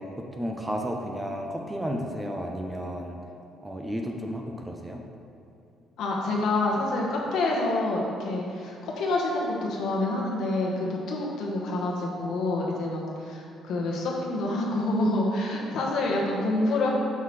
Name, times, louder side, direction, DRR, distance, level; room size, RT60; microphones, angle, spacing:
voice 1, 0.0-3.2 3.6-5.0, equal, 10° right, 2 dB, 0.4 m, -33 dB
voice 2, 6.0-16.9, left 2 dB, 65° left, -2 dB, 1.0 m, -27 dB
5.7 x 5.5 x 3.2 m, 2.5 s
cardioid pair, 145°, 0 cm